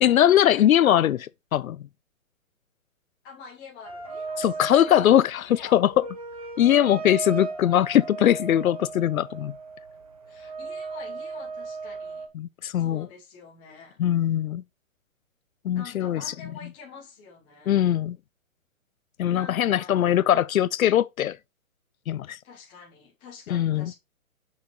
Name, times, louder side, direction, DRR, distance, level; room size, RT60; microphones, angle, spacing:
voice 1, 0.0-1.8 4.4-5.9 6.6-9.5 12.4-13.1 14.0-14.6 15.6-16.2 17.7-18.2 19.2-21.4 22.1-22.4 23.5-23.9, left 11 dB, 80° left, 0.6 m, -21 dB
voice 2, 3.2-5.0 5.4-5.8 7.0-7.3 10.3-12.3 12.7-14.0 15.7-17.8 19.3-20.3 22.4-23.9, left 5 dB, 10° left, 1.4 m, -47 dB
sound 1, 3.8-12.3, right 4 dB, 25° right, 0.8 m, -37 dB
5.9 x 5.8 x 3.0 m
hypercardioid pair, 175°, 41 cm